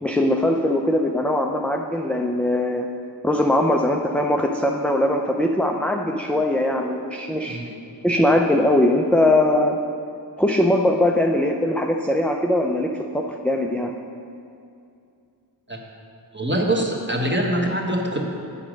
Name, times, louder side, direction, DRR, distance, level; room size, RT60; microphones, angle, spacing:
voice 1, 0.0-2.9 3.2-7.6 8.0-9.8 10.4-13.9, left 1 dB, 5° left, 1 dB, 0.3 m, -21 dB
voice 2, 16.3-18.3, right 1 dB, 25° right, 0 dB, 1.1 m, -23 dB
8.4 x 5.1 x 6.1 m, 2.6 s
wide cardioid pair, 60°, 43 cm